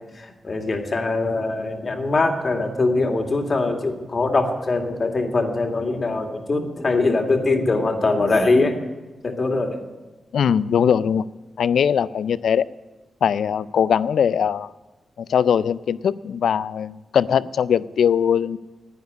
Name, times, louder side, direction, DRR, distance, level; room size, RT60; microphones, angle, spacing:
voice 1, 0.0-8.8 9.2-9.8, left 3 dB, 50° left, 4 dB, 2.2 m, -22 dB
voice 2, 10.3-11.2 11.6-12.6 13.2-14.7 15.2-18.6, left 8 dB, 80° left, 18 dB, 0.4 m, -20 dB
10.5 x 9.5 x 9.4 m, 1.2 s
supercardioid pair, 45°, 0 cm